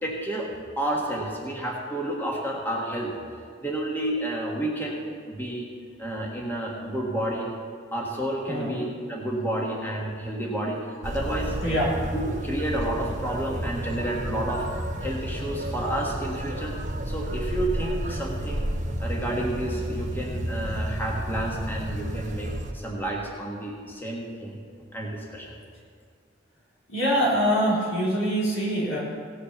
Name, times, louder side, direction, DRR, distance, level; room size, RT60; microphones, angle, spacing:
voice 1, 0.0-3.2 3.6-5.7 6.0-7.5 7.9-11.8 12.1-14.7 15.0-16.7 17.0-18.7 19.0-24.6 24.9-25.6, right 1 dB, 10° left, -2 dB, 1.5 m, -30 dB
voice 2, 8.5-8.8 11.6-11.9 26.9-29.0, equal, 85° left, -5 dB, 4.1 m, -24 dB
sound 1, 11.0-22.7, right 1 dB, 40° right, 0.9 m, -31 dB
17.0 x 6.6 x 7.0 m, 2.1 s
head